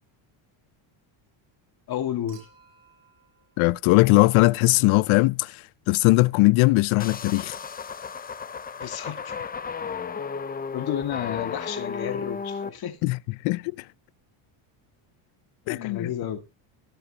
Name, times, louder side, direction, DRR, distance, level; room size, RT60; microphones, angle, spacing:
voice 1, 1.9-2.5 8.8-9.3 10.7-13.0 15.7-16.4, left 10 dB, 45° left, 2.0 m, -31 dB
Human group actions / Chink clink / Liquid, 2.3-4.7 6.2-6.3, right 6 dB, 55° right, 7.6 m, -58 dB
voice 2, 3.6-7.6 13.0-13.2 13.4-13.8 15.7-16.1, left 22 dB, 75° left, 0.6 m, -20 dB
sound 1, 7.0-12.7, left 6 dB, 20° left, 0.6 m, -34 dB
18.0 x 7.7 x 2.9 m
cardioid pair, 145°, 49 cm